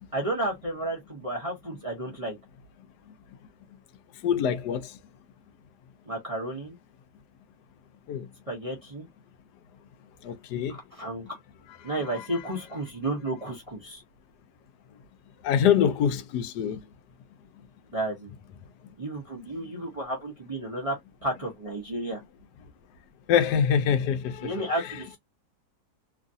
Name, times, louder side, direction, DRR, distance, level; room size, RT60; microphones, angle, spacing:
voice 1, 0.1-2.4 6.1-6.7 8.5-9.1 10.7-11.4 11.8-14.0 17.9-18.3 19.0-21.0 21.2-22.2 24.4-25.2, right 1 dB, 30° right, 0.7 m, -32 dB
voice 2, 4.2-4.9 8.1-8.3 10.2-10.8 11.8-12.4 15.4-16.8 23.3-25.2, left 8 dB, 90° left, 1.2 m, -25 dB
3.1 x 2.4 x 2.6 m
omnidirectional pair, 1.7 m